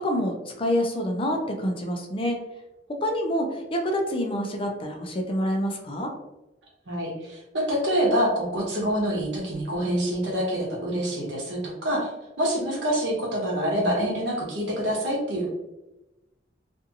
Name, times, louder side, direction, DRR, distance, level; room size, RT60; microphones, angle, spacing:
voice 1, 0.0-2.4 3.0-6.1, equal, 30° left, 2 dB, 0.5 m, -27 dB
voice 2, 6.9-12.1 12.4-15.5, equal, 90° right, -2 dB, 0.9 m, -26 dB
2.6 x 2.5 x 2.6 m, 0.96 s
head